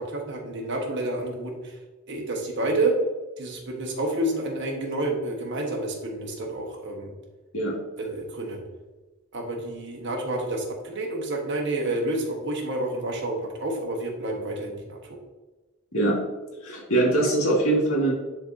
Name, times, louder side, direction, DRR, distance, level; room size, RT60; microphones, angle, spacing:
voice 1, 0.0-1.8 2.1-3.0 3.4-7.1 8.0-8.6 9.3-15.0, right 2 dB, 55° right, 1 dB, 1.3 m, -29 dB
voice 2, 16.6-18.1, right 2 dB, 75° left, -2 dB, 2.0 m, -22 dB
10.5 x 3.8 x 2.7 m, 1.2 s
head